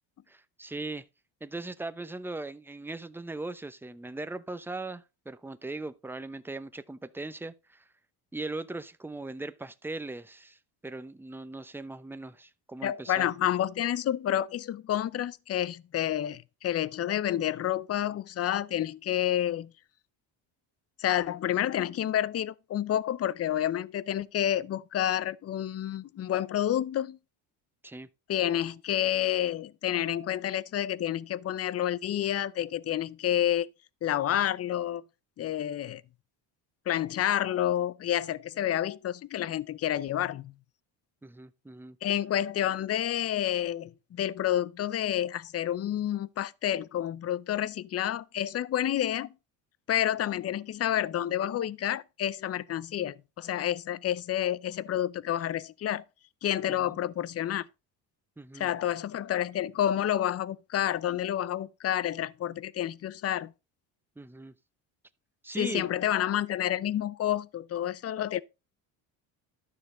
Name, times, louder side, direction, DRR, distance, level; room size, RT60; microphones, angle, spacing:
voice 1, 0.3-1.1 1.4-7.8 8.3-10.6 10.8-13.3 27.8-28.1 41.2-42.0 56.7-57.0 58.4-58.7 64.2-64.5 65.4-65.9, right 2 dB, 5° right, 0.7 m, -39 dB
voice 2, 12.8-19.7 21.0-27.2 28.3-33.7 34.0-35.0 35.4-36.0 36.9-40.5 42.0-49.3 49.9-56.0 56.4-57.7 58.5-63.5 65.6-68.4, left 11 dB, 35° left, 0.6 m, -29 dB
12.5 x 6.3 x 3.8 m
cardioid pair, 105°, 45 cm